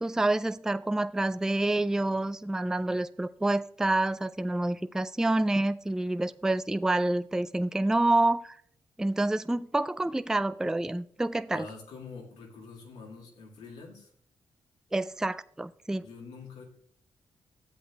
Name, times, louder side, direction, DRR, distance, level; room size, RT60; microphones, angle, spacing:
voice 1, 0.0-8.6 9.0-11.7 14.9-16.1, right 2 dB, 5° right, 0.3 m, -28 dB
voice 2, 11.5-14.1 16.0-16.6, left 4 dB, 90° left, 1.8 m, -45 dB
13.0 x 8.1 x 2.3 m
supercardioid pair, 45°, 11 cm